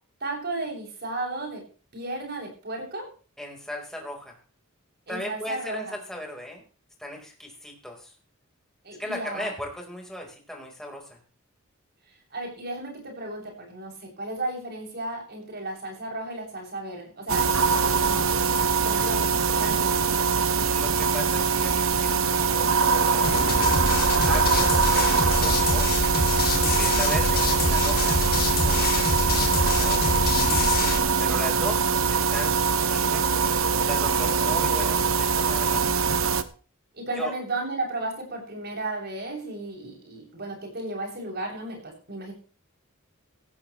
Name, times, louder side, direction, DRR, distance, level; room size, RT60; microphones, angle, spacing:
voice 1, 0.2-1.7 1.9-3.1 5.1-5.9 8.8-9.5 12.3-18.4 18.8-20.2 26.8-27.0 36.9-42.3, right 2 dB, 50° right, 0 dB, 7.7 m, -34 dB
voice 2, 3.4-4.3 5.1-6.6 7.0-8.1 9.0-11.2 20.5-23.6 24.3-26.0 26.8-30.4 31.2-35.8 37.1-37.3, left 1 dB, ahead, 0 dB, 4.6 m, -38 dB
sound 1, 17.3-36.4, right 5 dB, 75° right, 1.2 m, -23 dB
sound 2, 23.2-31.0, left 3 dB, 45° left, 2.5 m, -26 dB
17.5 x 14.5 x 3.3 m, 0.37 s
head